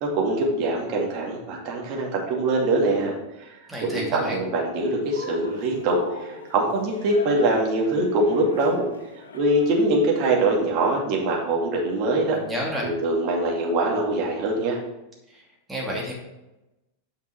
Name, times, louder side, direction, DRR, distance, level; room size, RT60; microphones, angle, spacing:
voice 1, 0.0-3.5 3.8-8.9 9.3-12.4 12.8-14.8, right 2 dB, 40° right, -1 dB, 2.3 m, -23 dB
voice 2, 3.7-4.4 12.3-12.9 15.3-16.1, equal, 10° right, -2 dB, 2.6 m, -30 dB
Cheering, 5.1-10.0, left 4 dB, 70° left, 1.0 m, -40 dB
9.4 x 5.3 x 4.5 m, 0.95 s
figure-of-eight pair, 90°, 0 cm